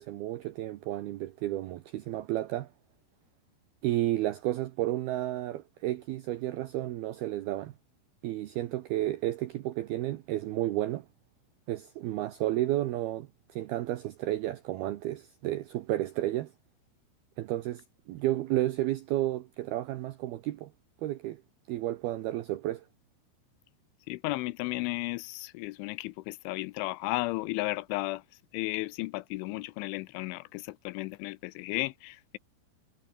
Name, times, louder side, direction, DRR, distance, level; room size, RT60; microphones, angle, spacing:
voice 1, 0.0-2.7 3.8-7.7 8.2-11.1 11.7-16.5 17.4-20.7 21.0-21.4 21.7-22.9, right 15 dB, 80° right, 2.2 m, -32 dB
voice 2, 24.1-28.2 28.5-32.4, left 21 dB, 80° left, 2.9 m, -34 dB
omnidirectional pair, 5.7 m